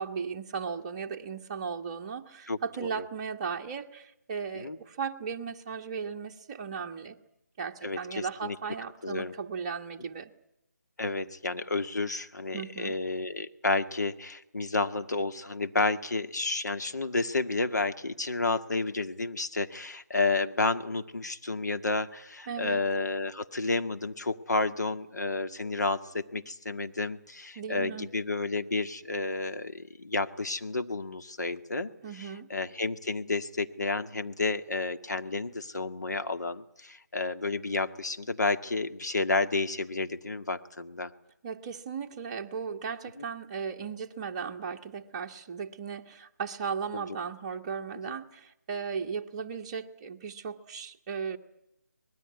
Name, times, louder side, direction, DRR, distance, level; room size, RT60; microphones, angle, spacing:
voice 1, 0.0-7.2 7.6-10.3 12.5-13.0 22.5-22.8 27.5-28.1 32.0-32.5 41.4-51.4, right 6 dB, 20° right, 2 dB, 1.4 m, -36 dB
voice 2, 2.5-2.9 4.5-4.8 7.8-8.6 9.0-9.3 11.0-31.9 32.2-41.1 46.9-47.0, left 3 dB, 75° left, 8 dB, 1.9 m, -31 dB
24.5 x 20.0 x 9.7 m, 0.81 s
figure-of-eight pair, 160°, 9 cm